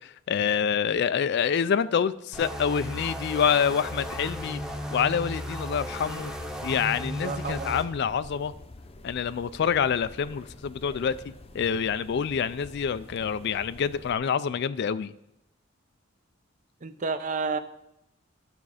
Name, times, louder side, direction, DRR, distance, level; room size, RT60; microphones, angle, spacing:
voice 1, 0.0-4.6 4.9-6.3 6.6-8.5 9.0-15.1, left 7 dB, 55° left, 14 dB, 0.3 m, -27 dB
sound 1, 2.3-7.8, equal, 5° right, 0.9 m, -35 dB
sound 2, 3.8-14.1, left 2 dB, 30° left, 0.7 m, -48 dB
voice 2, 7.2-7.8 16.8-17.6, right 4 dB, 40° right, 11 dB, 0.6 m, -30 dB
12.0 x 7.0 x 4.9 m, 0.82 s
head